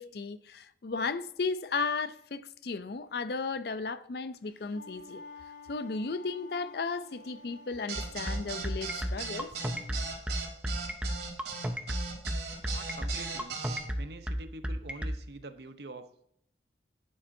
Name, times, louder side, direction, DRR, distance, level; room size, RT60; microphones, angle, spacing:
voice 1, 0.0-5.2 5.7-9.5, left 4 dB, 60° left, 0.5 m, -35 dB
Wind instrument woodwind instrument, 4.5-9.9, left 2 dB, 85° left, 2.5 m, -51 dB
sound 1, 7.9-13.8, right 5 dB, 80° right, 3.3 m, -38 dB
sound 2, 8.0-15.2, equal, 5° right, 0.5 m, -32 dB
voice 2, 12.7-13.6 14.0-16.3, right 2 dB, 65° right, 0.7 m, -45 dB
11.0 x 8.8 x 2.7 m
head